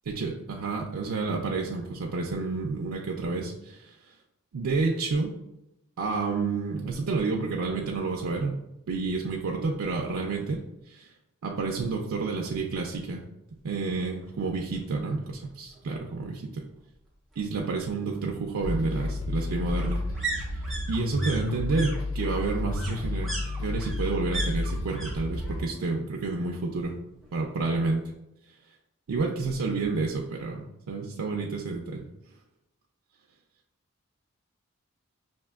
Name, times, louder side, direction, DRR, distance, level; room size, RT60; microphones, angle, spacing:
voice 1, 0.1-3.9 4.5-5.3 6.0-8.5 8.9-10.6 10.9-11.1 11.4-13.3 13.6-16.6 17.4-20.0 20.5-23.3 23.6-26.9 27.3-28.0 29.1-32.1, right 3 dB, 90° right, 0 dB, 0.4 m, -30 dB
sound 1, 14.2-14.3 14.7-14.8 15.0-16.0 17.3-25.1 25.4-26.0 26.2-27.3 27.6-27.7, right 3 dB, ahead, 0.7 m, -39 dB
sound 2, 18.6-25.6, left 2 dB, 70° left, 0.5 m, -31 dB
5.8 x 2.5 x 2.3 m, 0.90 s
head